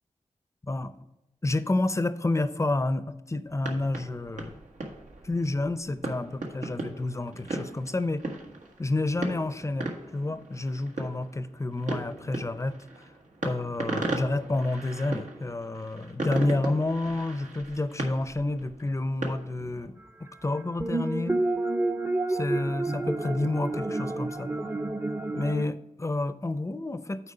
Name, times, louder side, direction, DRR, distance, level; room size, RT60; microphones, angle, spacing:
voice 1, 1.4-4.6 5.2-8.2 8.8-12.8 13.4-20.0 20.4-21.4 22.3-24.6 25.3-27.3, left 2 dB, 25° left, 13 dB, 0.6 m, -29 dB
sound 1, 3.5-19.9, right 2 dB, 80° right, 1.4 m, -37 dB
sound 2, 20.8-25.6, right 2 dB, 20° right, 0.6 m, -29 dB
8.6 x 4.5 x 5.5 m, 0.92 s
cardioid pair, 55°, 13 cm